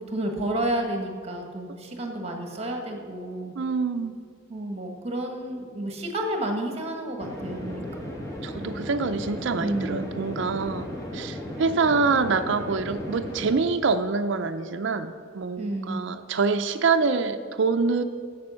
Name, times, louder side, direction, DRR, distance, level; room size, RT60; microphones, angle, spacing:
voice 1, 0.0-3.5 4.5-8.1 9.6-10.1 15.6-16.1, right 1 dB, 30° right, 3 dB, 1.3 m, -31 dB
voice 2, 3.6-4.2 8.4-10.9 11.1-18.0, right 4 dB, 65° right, 6 dB, 0.4 m, -25 dB
sound 1, 7.2-13.6, left 1 dB, 15° left, 1.3 m, -35 dB
10.5 x 7.6 x 6.2 m, 2.2 s
head